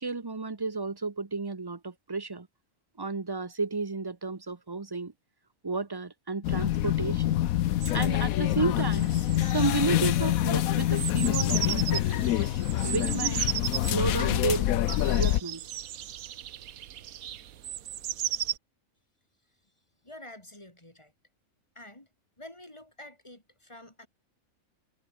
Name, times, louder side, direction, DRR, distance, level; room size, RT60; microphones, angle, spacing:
voice 1, 0.0-2.5 3.0-5.1 5.6-7.4 7.9-9.1 9.5-12.2 12.8-13.4 13.8-14.7 15.0-15.6, right 3 dB, 20° right, 0.9 m, -32 dB
local train - sliding door - starts - interior, 6.4-15.4, left 13 dB, 80° left, 1.1 m, -26 dB
sound 1, 7.8-18.6, right 11 dB, 85° right, 1.3 m, -36 dB
voice 2, 20.0-21.1 21.8-22.1 22.4-24.1, left 1 dB, 20° left, 3.8 m, -48 dB
omnidirectional pair, 1.5 m